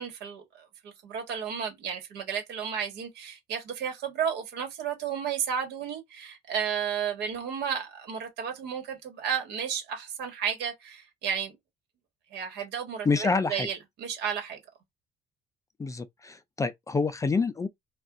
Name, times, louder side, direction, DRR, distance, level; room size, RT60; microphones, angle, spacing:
voice 1, 0.0-11.6 12.3-14.6, right 7 dB, 80° right, 1.4 m, -33 dB
voice 2, 13.1-13.7 15.8-17.7, left 4 dB, 20° left, 0.4 m, -27 dB
2.4 x 2.4 x 3.7 m
cardioid pair, 110°, 17 cm